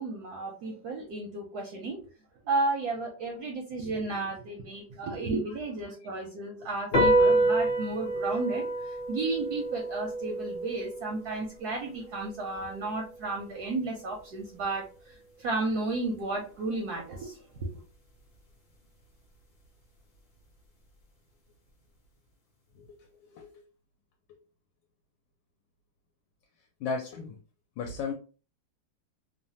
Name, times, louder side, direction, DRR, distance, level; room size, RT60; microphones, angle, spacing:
voice 1, 0.0-2.1 2.5-17.7, right 3 dB, 70° right, 0.9 m, -33 dB
sound 1, 6.9-13.7, right 1 dB, 60° left, 0.5 m, -28 dB
voice 2, 22.7-23.6 26.8-27.4 27.8-28.1, left 4 dB, 80° left, 1.2 m, -36 dB
3.2 x 2.1 x 2.7 m
omnidirectional pair, 2.1 m